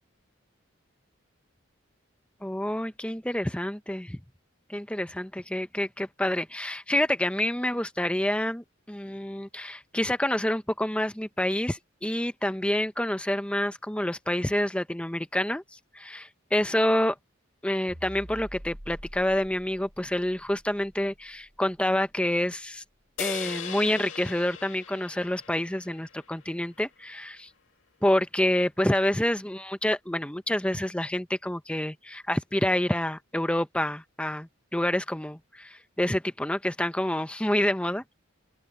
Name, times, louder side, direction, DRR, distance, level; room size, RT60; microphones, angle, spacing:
voice 1, 2.4-4.2 4.7-15.6 15.9-17.2 17.6-22.8 23.2-27.5 28.0-38.1, left 1 dB, 5° left, 0.8 m, -28 dB
sound 1, 17.9-22.4, equal, 35° right, 7.2 m, -47 dB
sound 2, 23.2-26.7, left 8 dB, 65° left, 2.4 m, -39 dB
open air
head